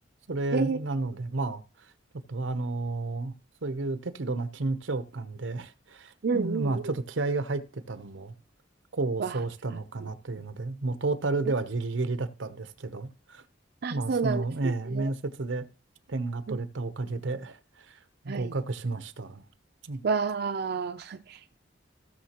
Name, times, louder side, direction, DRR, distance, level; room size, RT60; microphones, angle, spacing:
voice 1, 0.3-1.6 2.3-3.3 3.6-8.3 8.9-13.4 13.9-15.7 16.1-17.6 17.9-18.0 18.2-19.4 19.8-20.0, right 3 dB, 90° right, 0.8 m, -31 dB
voice 2, 6.2-6.8 9.2-9.4 10.0-10.1 13.8-15.1 16.5-16.6 18.3-18.5 20.0-21.5, right 5 dB, 60° right, 0.4 m, -30 dB
16.0 x 6.6 x 2.9 m
head